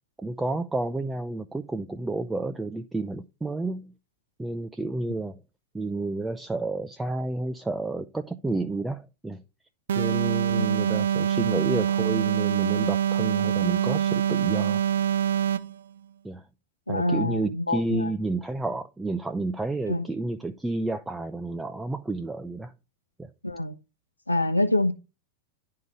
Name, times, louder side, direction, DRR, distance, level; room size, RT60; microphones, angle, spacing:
voice 1, 0.2-3.9 4.4-5.4 5.7-9.4 10.0-14.8 16.2-16.4 16.9-22.7 23.2-23.3, right 2 dB, 10° right, 0.6 m, -30 dB
sound 1, 9.9-15.8, right 9 dB, 65° right, 0.6 m, -25 dB
voice 2, 10.6-11.0 16.9-18.1 19.9-20.1 23.4-23.8 24.3-24.9, left 1 dB, 85° left, 0.8 m, -26 dB
10.5 x 3.8 x 6.6 m
figure-of-eight pair, 90°, 0 cm